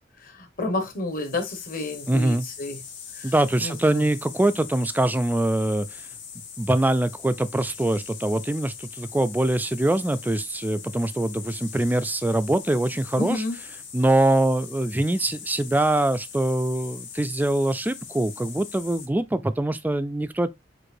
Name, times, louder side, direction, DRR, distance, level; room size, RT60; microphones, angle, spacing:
voice 1, 0.2-2.8 3.2-3.3 3.6-4.0 13.2-13.5, left 2 dB, 50° left, 1.3 m, -30 dB
sound 1, 1.1-19.1, left 7 dB, 70° left, 1.7 m, -41 dB
voice 2, 2.1-2.5 3.2-6.1 6.6-13.4 13.9-20.5, right 1 dB, 10° right, 0.3 m, -23 dB
7.6 x 2.6 x 2.6 m
head